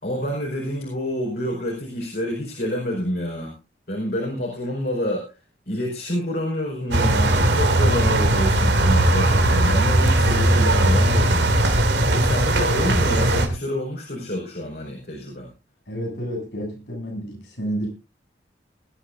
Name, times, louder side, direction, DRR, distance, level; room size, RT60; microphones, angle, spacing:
voice 1, 0.0-3.5 3.9-5.4 5.7-11.7 12.1-15.5, equal, 60° left, -1 dB, 4.9 m, -28 dB
sound 1, 6.9-13.5, right 1 dB, 85° right, 2.7 m, -18 dB
voice 2, 15.9-17.9, right 1 dB, 90° left, 2 dB, 8.0 m, -30 dB
20.5 x 13.0 x 2.6 m, 0.29 s
head